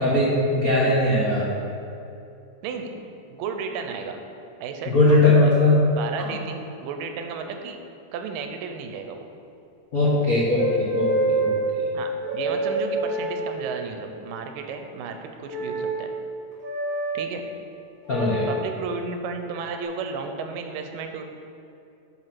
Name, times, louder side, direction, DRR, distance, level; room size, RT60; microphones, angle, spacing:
voice 1, 0.0-1.5 4.9-5.8 9.9-11.5 18.1-18.5, left 2 dB, 65° left, -7 dB, 0.8 m, -20 dB
voice 2, 3.3-4.2 4.6-5.4 5.9-7.8 8.1-9.3 11.9-16.1 17.1-17.4 18.5-21.3, right 5 dB, 90° right, 5 dB, 2.4 m, -33 dB
sound 1, 10.5-11.7 12.2-13.9 15.5-16.0 16.6-17.2 18.1-18.6 19.5-19.8, right 2 dB, 40° right, 1.3 m, -27 dB
9.4 x 4.7 x 5.9 m, 2.7 s
omnidirectional pair, 3.8 m